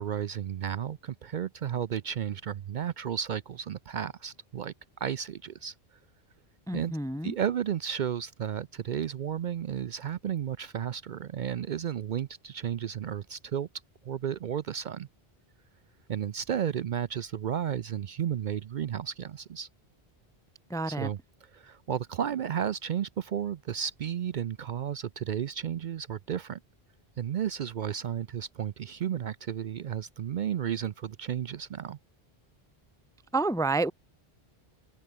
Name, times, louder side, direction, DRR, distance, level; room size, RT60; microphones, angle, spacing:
voice 1, 0.0-4.7 5.0-5.7 6.7-6.9 7.2-13.7 14.0-15.1 16.1-19.7 20.9-26.6 27.2-32.0, right 9 dB, 60° right, 0.6 m, -33 dB
voice 2, 6.7-7.3 20.7-21.1 33.3-33.9, right 3 dB, 5° left, 0.5 m, -29 dB
omnidirectional pair, 1.0 m